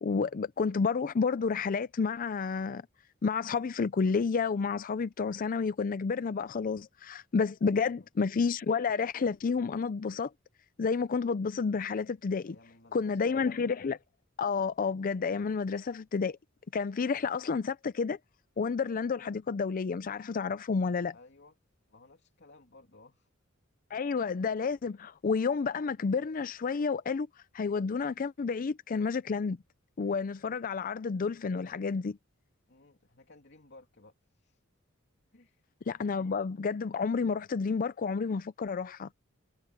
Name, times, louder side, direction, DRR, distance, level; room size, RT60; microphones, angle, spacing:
voice 1, 0.0-2.8 3.2-10.3 10.8-12.6 12.9-14.0 14.4-16.4 16.7-18.2 18.6-21.1 23.9-27.3 27.5-29.6 30.0-32.2 35.9-39.1, left 5 dB, 45° left, 0.4 m, -30 dB
voice 2, 7.8-8.1 12.4-13.9 21.1-21.6 21.9-23.3 32.7-34.6 35.3-35.7, left 2 dB, 60° left, 2.8 m, -57 dB
head